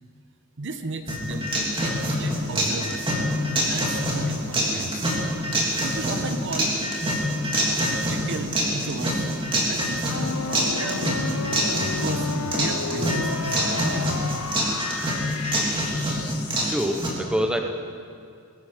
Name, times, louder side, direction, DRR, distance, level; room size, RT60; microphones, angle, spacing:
voice 1, 0.6-1.5 1.8-3.1 3.7-5.1 5.8-6.7 7.7-9.2 9.7-11.3 11.8-14.2, right 3 dB, 55° right, 8 dB, 1.0 m, -34 dB
sound 1, 1.1-17.1, equal, 25° right, 2.9 m, -25 dB
sound 2, 10.0-16.7, left 5 dB, 70° left, 0.6 m, -33 dB
voice 2, 16.6-17.6, equal, 5° right, 4 dB, 0.9 m, -25 dB
20.5 x 12.0 x 5.1 m, 2.4 s
head